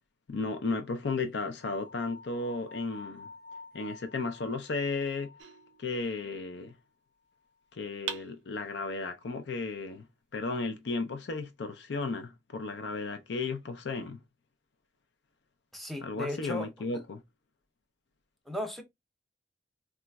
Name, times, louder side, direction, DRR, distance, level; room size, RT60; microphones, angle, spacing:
voice 1, 0.3-3.3 3.7-5.3 5.8-6.7 7.7-10.0 10.3-14.2 16.0-17.2, left 3 dB, 65° left, 0.5 m, -34 dB
sound 1, 1.6-6.7, left 4 dB, 25° left, 0.8 m, -50 dB
sound 2, 5.4-6.5 8.1-9.1, right 8 dB, 80° right, 0.5 m, -43 dB
voice 2, 15.7-16.7 18.5-18.8, left 1 dB, ahead, 0.6 m, -36 dB
3.9 x 2.4 x 2.2 m
head